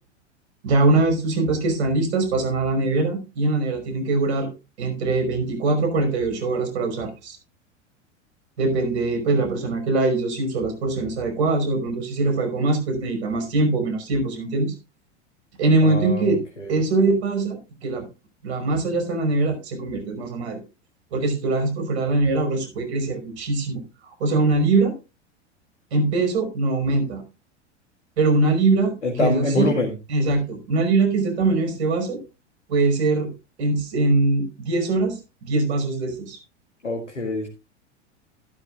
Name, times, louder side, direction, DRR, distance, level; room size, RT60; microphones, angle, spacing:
voice 1, 0.6-4.5 4.8-7.4 8.6-14.7 15.6-16.4 16.7-18.0 18.4-20.6 21.1-23.8 24.2-25.0 25.9-27.2 28.2-29.7 30.1-32.2 32.7-33.3 33.6-36.4, right 3 dB, 65° right, 6 dB, 5.4 m, -22 dB
voice 2, 15.8-16.3 29.0-29.9 36.8-37.5, left 2 dB, 90° left, 2 dB, 2.0 m, -24 dB
14.0 x 12.0 x 2.4 m, 0.28 s
figure-of-eight pair, 90°, 35 cm